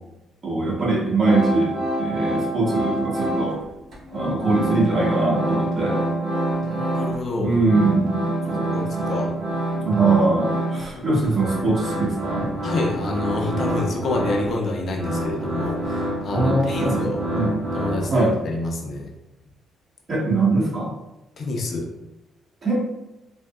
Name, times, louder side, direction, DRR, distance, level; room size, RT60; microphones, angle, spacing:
voice 1, 0.4-3.5 4.1-6.0 7.4-9.1 9.8-12.5 16.3-17.0 17.3-17.5 18.1-18.3 20.1-20.9 22.6-22.8, right 3 dB, 40° right, -6 dB, 1.3 m, -22 dB
sound 1, 1.2-3.7 3.9-7.2 7.5-18.4, right 1 dB, 60° right, 0.9 m, -27 dB
voice 2, 6.6-7.6 8.7-9.4 10.9-11.0 12.6-17.2 17.7-19.1 21.4-21.9, left 2 dB, 55° left, 1 dB, 0.5 m, -28 dB
3.4 x 2.1 x 2.3 m, 0.95 s
cardioid pair, 90°, 0 cm